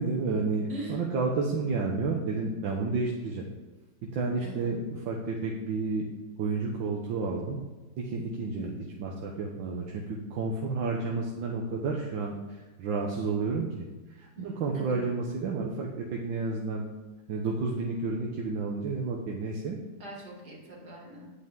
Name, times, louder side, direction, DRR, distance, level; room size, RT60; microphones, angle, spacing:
voice 1, 0.0-3.4 4.0-6.1 6.4-7.6 8.0-13.9 14.1-16.9 17.3-19.8, right 3 dB, 80° right, -1 dB, 1.8 m, -31 dB
voice 2, 0.7-1.0 4.4-4.7 14.4-15.0 20.0-21.3, right 1 dB, 55° right, -3 dB, 3.3 m, -42 dB
10.0 x 9.1 x 3.7 m, 1.2 s
omnidirectional pair, 2.1 m